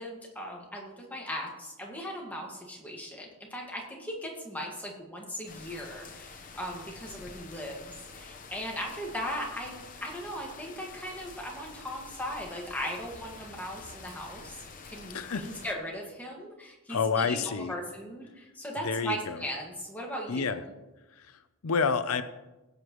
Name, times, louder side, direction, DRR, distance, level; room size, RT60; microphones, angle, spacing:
voice 1, 0.0-9.7 10.0-20.6, equal, 5° left, -1 dB, 1.7 m, -38 dB
sound 1, 5.5-15.7, left 4 dB, 35° left, 0.9 m, -48 dB
voice 2, 15.1-15.4 16.9-17.7 18.8-19.4 20.3-20.6 21.6-22.2, left 5 dB, 75° left, 11 dB, 0.6 m, -28 dB
17.0 x 8.1 x 3.1 m, 1.1 s
head